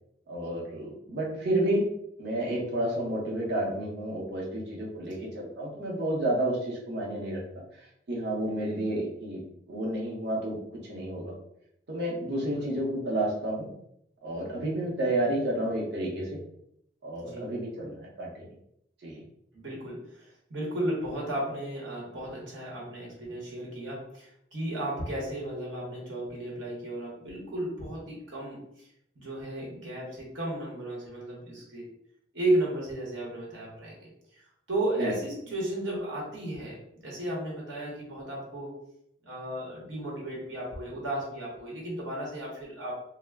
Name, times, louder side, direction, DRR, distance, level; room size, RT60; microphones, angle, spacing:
voice 1, 0.3-1.9 2.2-7.4 7.8-9.4 9.7-11.3 11.9-13.7 14.2-16.4 17.0-18.5 19.0-19.2 35.0-35.1, right 1 dB, 65° right, -4 dB, 0.7 m, -30 dB
voice 2, 19.5-28.9 29.2-31.9 32.3-34.1 34.7-38.8 39.2-42.9, right 1 dB, 85° right, -3 dB, 1.0 m, -34 dB
2.3 x 2.0 x 3.3 m, 0.76 s
head